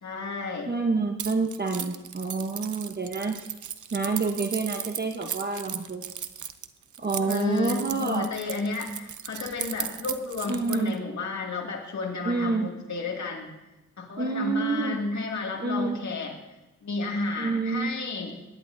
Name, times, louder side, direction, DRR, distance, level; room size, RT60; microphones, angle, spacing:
voice 1, 0.0-0.7 7.3-13.5 14.0-16.3 16.8-18.3, left 3 dB, 65° left, 0 dB, 2.3 m, -32 dB
voice 2, 0.7-3.4 3.9-6.1 7.0-8.3 10.5-11.0 12.2-12.7 14.2-15.0 15.6-16.0 17.4-17.9, right 3 dB, 35° right, 4 dB, 1.0 m, -28 dB
Keys jangling, 1.2-11.0, right 9 dB, 75° right, 0.7 m, -36 dB
22.0 x 10.5 x 2.7 m, 1.0 s
cardioid pair, 80°, 30 cm